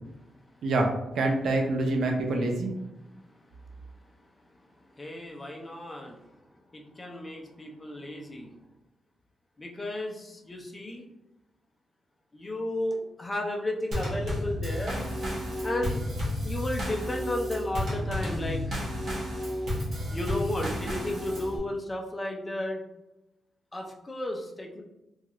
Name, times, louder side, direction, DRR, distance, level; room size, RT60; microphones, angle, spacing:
voice 1, 0.6-2.7, right 2 dB, 70° right, 2 dB, 0.5 m, -26 dB
voice 2, 3.3-4.5 4.9-8.6 9.6-11.1 12.3-15.1 15.6-16.1 16.4-18.8 20.1-22.8 23.7-24.8, left 1 dB, 20° left, 1 dB, 0.4 m, -34 dB
Drum kit / Snare drum / Bass drum, 13.9-21.6, equal, 50° right, 0.9 m, -32 dB
3.0 x 2.4 x 2.8 m, 0.93 s
wide cardioid pair, 170°, 0 cm